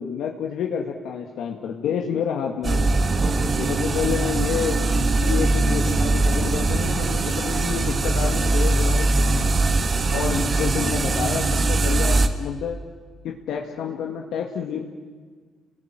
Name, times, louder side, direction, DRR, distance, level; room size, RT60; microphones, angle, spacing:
voice 1, 0.0-2.9 3.6-4.8 5.2-9.3 10.1-12.8 13.2-14.8, left 8 dB, 80° left, 1 dB, 2.1 m, -29 dB
sound 1, 2.6-12.3, right 2 dB, 45° right, 2.2 m, -21 dB
29.5 x 20.5 x 9.2 m, 1.5 s
cardioid pair, 75°, 0 cm